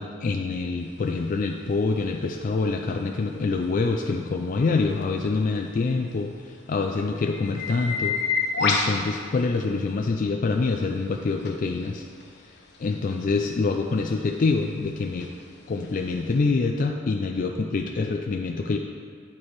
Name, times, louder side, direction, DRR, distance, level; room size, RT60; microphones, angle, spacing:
voice 1, 0.0-8.2 8.6-12.0 12.8-15.3 15.7-18.8, left 4 dB, 40° left, 3 dB, 0.3 m, -26 dB
sound 1, 0.8-10.1 10.5-16.4, left 4 dB, 55° left, 0.8 m, -33 dB
8.7 x 4.5 x 4.6 m, 2.1 s
head